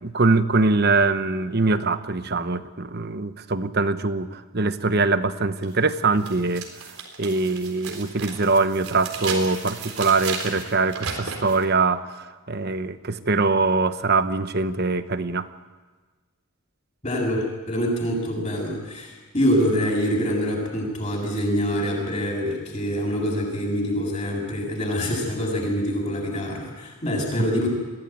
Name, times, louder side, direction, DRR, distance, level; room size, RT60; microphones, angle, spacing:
voice 1, 0.0-6.6 7.2-15.5 27.4-27.5, right 3 dB, 50° right, 11 dB, 1.0 m, -23 dB
sound 1, 5.6-5.7 6.2-11.6, right 5 dB, 85° right, 4.0 m, -34 dB
voice 2, 17.0-27.7, equal, 30° left, -2 dB, 7.4 m, -25 dB
22.5 x 16.5 x 9.2 m, 1.3 s
head